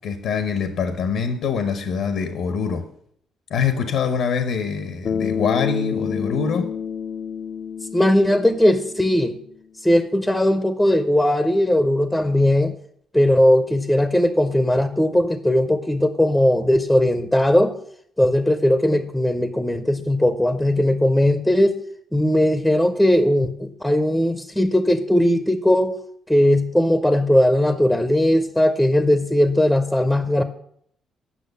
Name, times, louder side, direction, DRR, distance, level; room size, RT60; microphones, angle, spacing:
voice 1, 0.0-2.9 3.5-6.7, left 6 dB, 80° left, 0.9 m, -24 dB
Bass guitar, 5.1-9.4, left 6 dB, 55° left, 0.4 m, -29 dB
voice 2, 7.9-9.4 9.8-12.7 13.1-17.7 18.2-21.8 22.1-26.0 26.3-30.4, left 1 dB, 5° left, 0.7 m, -18 dB
8.5 x 6.1 x 6.8 m
cardioid pair, 90°, 0 cm